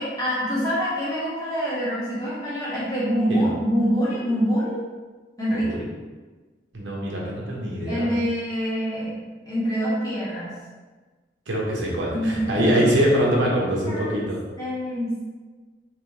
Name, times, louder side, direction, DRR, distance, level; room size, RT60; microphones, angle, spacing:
voice 1, 0.0-4.8 5.4-5.7 7.9-10.5 12.1-12.9 13.9-14.2 14.6-15.3, equal, 20° left, -10 dB, 1.4 m, -25 dB
voice 2, 6.7-8.1 11.5-14.4, equal, 80° right, -3 dB, 1.0 m, -23 dB
4.2 x 3.0 x 3.2 m, 1.3 s
head